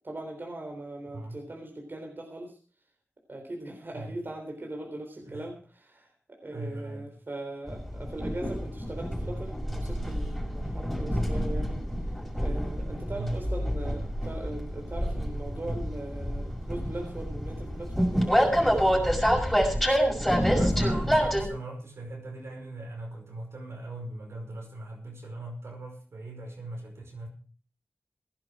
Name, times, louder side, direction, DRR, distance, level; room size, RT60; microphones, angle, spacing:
voice 1, 0.0-2.6 3.3-6.1 6.4-11.8 12.4-19.1, right 1 dB, 50° right, 2 dB, 3.6 m, -40 dB
voice 2, 5.2-5.5 6.5-7.1 13.1-13.5 20.5-27.3, right 2 dB, 75° right, 1 dB, 5.3 m, -40 dB
Train, 7.7-21.5, equal, ahead, 5.9 m, -27 dB
16.5 x 11.0 x 4.9 m, 0.40 s
cardioid pair, 50°, 4 cm